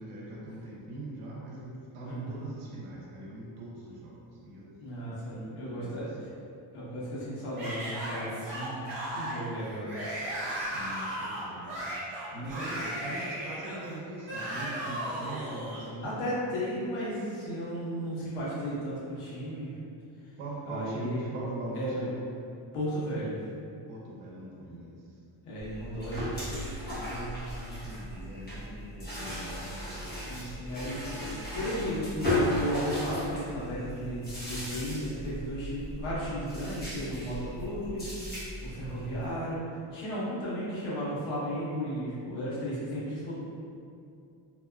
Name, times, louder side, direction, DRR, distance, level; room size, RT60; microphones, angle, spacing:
voice 1, 0.0-4.7 5.3-6.2 10.7-11.7 12.3-16.2 20.4-22.2 23.9-25.2 26.9-30.1, right 2 dB, 85° right, -4 dB, 0.8 m, -41 dB
voice 2, 2.0-2.4 4.8-6.1 6.7-8.9 9.1-9.9 16.0-19.7 20.7-21.2 21.7-22.1 22.7-23.4 25.4-26.3 30.2-38.0 38.6-39.6 39.9-43.4, equal, 85° left, -8 dB, 1.1 m, -34 dB
Yell / Screaming, 7.6-15.9, right 1 dB, 40° right, 0.9 m, -36 dB
sound 1, 25.6-39.3, left 1 dB, 20° left, 0.6 m, -36 dB
2.8 x 2.3 x 2.3 m, 2.5 s
cardioid pair, 165°, 50 cm